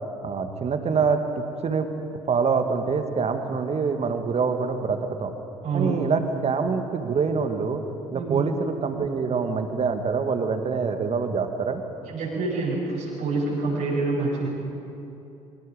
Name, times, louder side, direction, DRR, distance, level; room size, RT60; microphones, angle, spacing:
voice 1, 0.2-1.9 2.3-5.3 5.7-7.8 8.1-11.8, right 5 dB, 35° right, 7 dB, 2.0 m, -25 dB
voice 2, 5.6-6.1 8.1-8.4 12.1-14.5, right 3 dB, 55° right, -6 dB, 6.7 m, -27 dB
25.5 x 24.0 x 5.1 m, 2.8 s
figure-of-eight pair, 55°, 18 cm